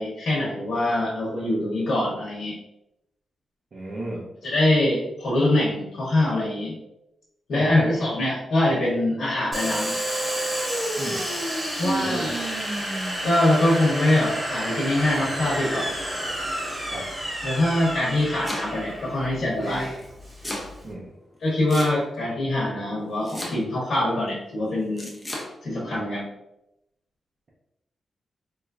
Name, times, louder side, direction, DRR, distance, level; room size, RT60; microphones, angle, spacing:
voice 1, 0.0-2.5 4.4-6.8 7.5-9.9 11.8-12.5 13.2-15.9 17.4-19.9 21.4-25.1 25.6-26.2, left 1 dB, 70° left, -6 dB, 0.9 m, -23 dB
voice 2, 3.7-4.3 7.5-7.8 11.0-11.3 11.8-12.3 16.8-17.1 20.8-21.1, right 1 dB, 45° right, -6 dB, 0.5 m, -34 dB
Domestic sounds home sounds, 9.5-20.9, right 1 dB, 20° right, 1.0 m, -30 dB
Domestic sounds home sounds 2, 18.1-19.0 20.0-20.7 21.7-22.3 23.3-23.9 25.0-25.5, left 1 dB, 10° left, 0.6 m, -34 dB
3.1 x 2.4 x 2.3 m, 0.86 s
wide cardioid pair, 120°, 0 cm